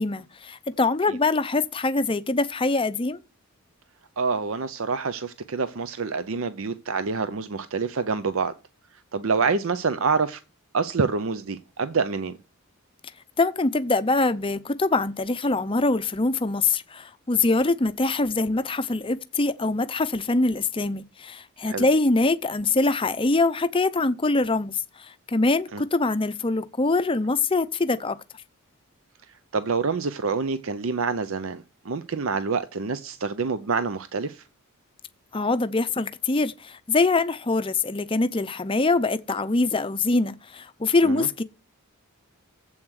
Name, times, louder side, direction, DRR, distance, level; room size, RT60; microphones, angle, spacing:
voice 1, 0.0-3.2 13.4-28.2 35.3-41.4, left 3 dB, 25° left, 0.6 m, -24 dB
voice 2, 4.2-8.5 8.9-10.4 10.7-12.3 21.6-21.8 25.7-25.8 29.3-34.4 41.0-41.3, right 4 dB, 60° right, 0.6 m, -27 dB
7.9 x 7.1 x 6.3 m
head